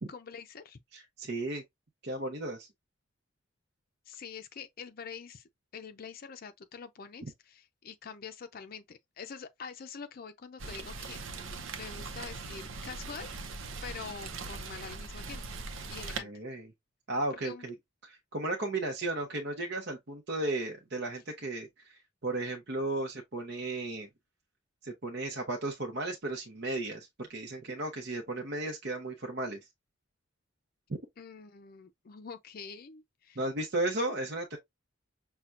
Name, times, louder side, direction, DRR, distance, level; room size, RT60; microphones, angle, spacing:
voice 1, 0.1-0.8 4.1-13.4 13.8-15.4 15.9-16.3 17.4-17.7 31.2-33.4, left 6 dB, 50° left, 0.5 m, -45 dB
voice 2, 0.9-1.6 2.0-2.7 16.2-16.7 17.1-17.7 18.0-24.1 24.8-29.6 33.4-34.6, right 2 dB, 55° right, 0.8 m, -35 dB
Rain, 10.6-16.2, right 4 dB, 80° right, 0.7 m, -41 dB
5.9 x 2.2 x 2.5 m
head